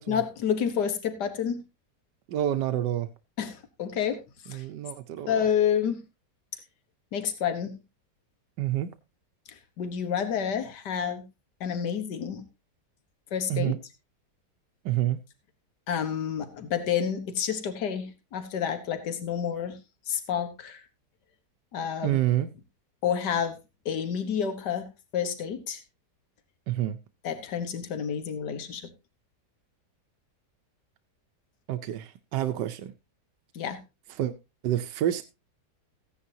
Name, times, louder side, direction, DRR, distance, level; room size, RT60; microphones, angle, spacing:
voice 1, 0.1-1.6 3.4-4.2 4.5-4.6 5.3-6.0 7.1-7.7 9.8-11.2 11.6-12.4 13.3-13.7 15.9-19.8 20.1-20.8 21.7-22.2 23.0-23.6 23.9-24.9 25.1-25.8 27.2-28.9 33.6-33.8, left 8 dB, 75° left, 1.9 m, -29 dB
voice 2, 2.3-3.1 4.5-5.4 8.6-8.9 13.5-13.8 14.8-15.2 22.0-22.5 26.7-27.0 31.7-32.9 34.2-34.3 34.6-35.2, right 12 dB, 85° right, 1.4 m, -28 dB
15.0 x 10.0 x 2.8 m
omnidirectional pair, 1.8 m